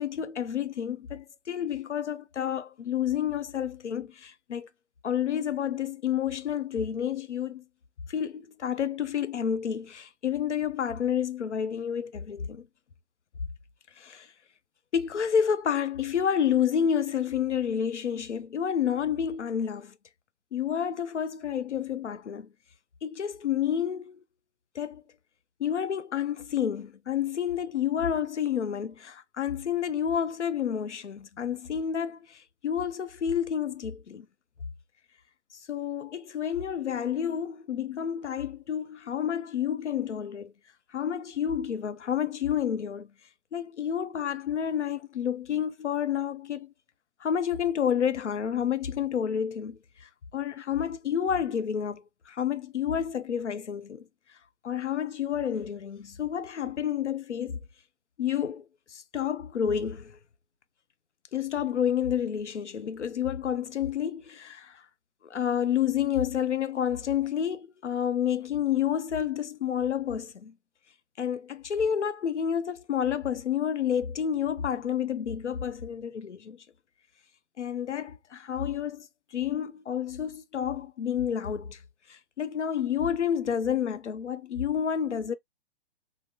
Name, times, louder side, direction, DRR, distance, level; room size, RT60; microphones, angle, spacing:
voice 1, 0.0-4.7 5.0-7.6 8.1-12.7 14.0-14.3 14.9-19.9 20.5-22.5 23.0-24.2 24.7-25.0 25.6-34.3 35.7-40.5 40.9-43.1 43.5-46.7 47.2-54.0 54.6-57.6 58.2-58.6 58.9-60.2 61.3-64.8 65.2-70.5 71.2-76.6 77.6-79.1 79.3-81.8 82.1-85.4, left 8 dB, 85° left, 0.5 m, -29 dB
3.9 x 2.0 x 2.2 m
figure-of-eight pair, 120°, 34 cm